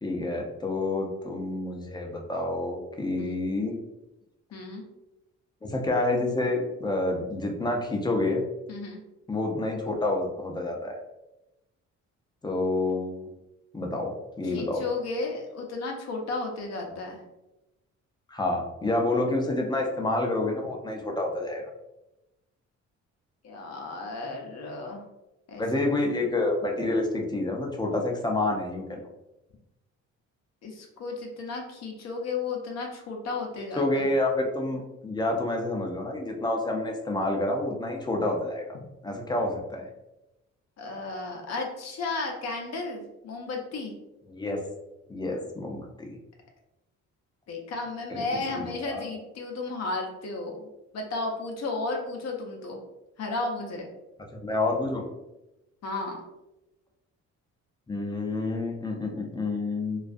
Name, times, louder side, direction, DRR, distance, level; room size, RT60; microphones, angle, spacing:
voice 1, 0.0-3.7 5.6-8.4 9.3-11.0 12.4-13.3 13.7-14.9 18.3-21.6 25.6-29.0 33.6-38.8 39.0-39.9 44.3-44.6 45.1-46.1 48.1-48.2 48.5-49.1 54.3-55.1 57.9-60.0, left 2 dB, 15° left, 1 dB, 0.4 m, -28 dB
voice 2, 4.5-4.8 8.7-9.0 14.4-17.2 23.4-25.0 25.5-25.6 30.6-34.1 40.8-43.9 47.5-50.6 50.9-52.8 53.2-53.9 55.8-56.2, left 3 dB, 60° left, 1 dB, 0.6 m, -33 dB
2.3 x 2.3 x 2.5 m, 0.95 s
cardioid pair, 90°, 30 cm